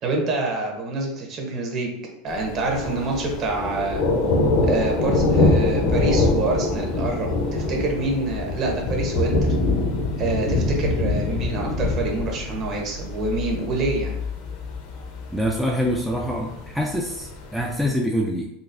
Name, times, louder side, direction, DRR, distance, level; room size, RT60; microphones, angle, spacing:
voice 1, 0.0-1.9 2.2-4.0 4.6-9.4 10.2-14.1, right 3 dB, 40° right, 1 dB, 0.9 m, -26 dB
Thunder, 2.3-17.9, left 2 dB, 60° left, 0.7 m, -24 dB
voice 2, 15.3-18.5, equal, ahead, -2 dB, 0.3 m, -25 dB
3.9 x 2.5 x 2.5 m, 0.79 s
supercardioid pair, 135°, 0 cm